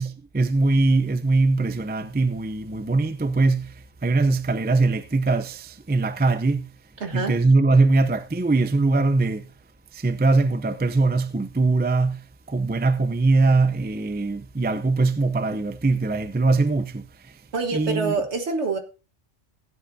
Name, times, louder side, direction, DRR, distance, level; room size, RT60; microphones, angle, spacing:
voice 1, 0.0-6.7 7.1-9.5 9.9-17.4 17.7-18.1, right 3 dB, 15° right, 0.3 m, -22 dB
voice 2, 7.0-7.4 17.5-18.8, right 4 dB, 65° right, 1.8 m, -26 dB
16.0 x 10.0 x 2.7 m
omnidirectional pair, 1.2 m